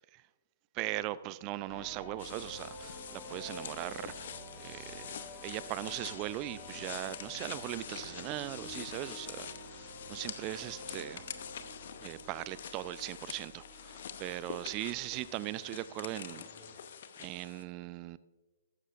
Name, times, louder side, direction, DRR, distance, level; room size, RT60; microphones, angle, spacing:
voice 1, 0.7-11.2 12.0-16.5 17.2-18.2, right 16 dB, 30° right, 0.4 m, -39 dB
sound 1, 1.7-16.8, equal, ahead, 2.6 m, -50 dB
sound 2, 2.2-17.6, left 8 dB, 50° left, 0.8 m, -46 dB
14.5 x 12.5 x 2.5 m
figure-of-eight pair, 125°, 0 cm